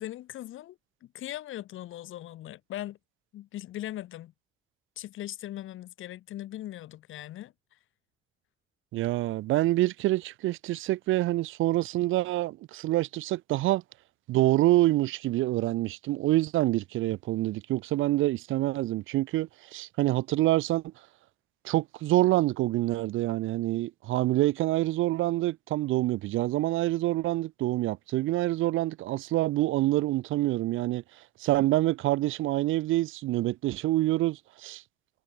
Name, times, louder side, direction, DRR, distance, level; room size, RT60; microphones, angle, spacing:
voice 1, 0.0-3.0 3.3-4.3 5.0-7.8, left 13 dB, 80° left, 3.7 m, -40 dB
voice 2, 8.9-13.8 14.3-20.9 21.6-31.0 31.4-34.8, right 16 dB, 80° right, 0.6 m, -26 dB
cardioid pair, 90°, 20 cm